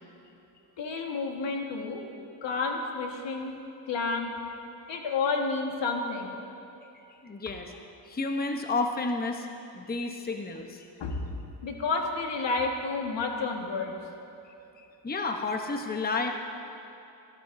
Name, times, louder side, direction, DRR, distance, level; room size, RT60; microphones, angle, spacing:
voice 1, 0.8-2.0 2.4-3.5 3.9-4.3 4.9-6.4 11.0-11.3 11.6-13.9, left 4 dB, 70° left, 2 dB, 1.7 m, -30 dB
voice 2, 7.2-7.8 8.0-9.5 9.7-10.9 14.8-16.3, left 3 dB, 20° left, 4 dB, 0.9 m, -31 dB
21.5 x 13.5 x 2.7 m, 2.9 s
cardioid pair, 75°, 45 cm